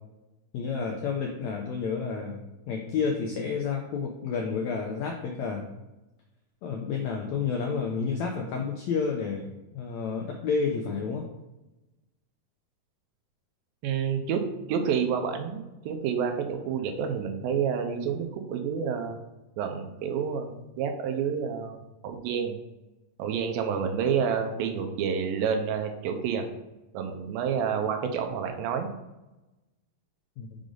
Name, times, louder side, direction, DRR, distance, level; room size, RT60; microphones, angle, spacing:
voice 1, 0.5-2.4 2.7-5.6 6.6-11.2 30.4-30.5, left 5 dB, 85° left, 1 dB, 1.6 m, -30 dB
voice 2, 13.8-19.2 19.6-22.6 23.2-26.5 26.9-28.9, right 7 dB, 90° right, 5 dB, 2.6 m, -29 dB
6.4 x 5.0 x 3.9 m, 0.99 s
omnidirectional pair, 4.0 m